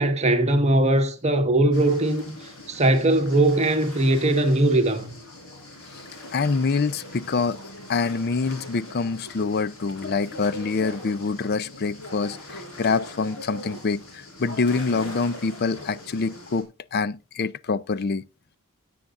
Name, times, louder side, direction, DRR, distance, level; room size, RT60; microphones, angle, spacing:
voice 1, 0.0-5.1, right 1 dB, 30° right, 1.4 m, -20 dB
sound 1, 1.7-16.6, left 1 dB, 75° left, 4.5 m, -41 dB
voice 2, 6.3-7.6 7.9-18.2, left 4 dB, 45° left, 0.5 m, -26 dB
17.0 x 9.3 x 2.5 m
head